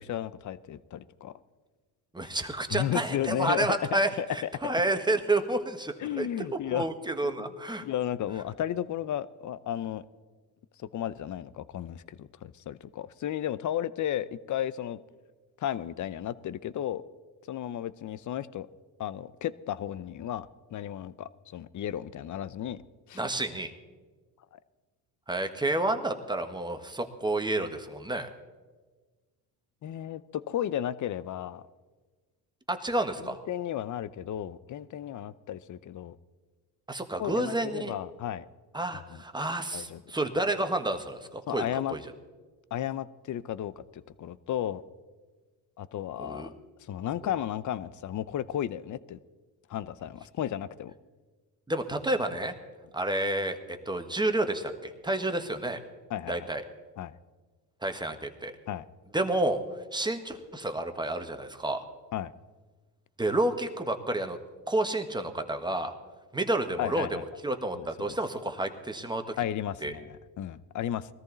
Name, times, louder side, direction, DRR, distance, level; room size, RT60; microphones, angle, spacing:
voice 1, 0.0-1.3 2.7-3.8 4.2-4.7 6.0-6.9 7.2-7.5 7.8-10.0 10.8-15.0 15.6-17.0 17.5-18.7 19.0-22.8 23.1-23.2 24.5-24.6 29.8-31.6 33.2-36.2 37.2-38.5 38.9-39.2 39.7-40.0 41.5-42.0 42.7-44.8 45.8-46.5 46.8-49.2 49.7-50.9 56.1-56.5 57.0-57.2 58.7-58.8 62.1-62.3 66.8-67.2 67.8-68.2 69.4-71.1, left 11 dB, 45° left, 17 dB, 0.7 m, -34 dB
voice 2, 2.1-6.3 6.7-7.8 23.1-23.7 25.3-28.3 32.7-33.4 36.9-37.9 38.7-42.0 46.2-46.5 51.7-52.5 52.9-55.8 56.3-56.6 57.8-58.5 59.1-59.6 59.9-61.8 63.2-64.4 64.7-65.9 66.3-67.1 67.4-69.4 69.8-69.9, right 2 dB, 10° right, 7 dB, 1.4 m, -30 dB
21.0 x 13.5 x 4.0 m, 1.4 s
supercardioid pair, 90°, 42 cm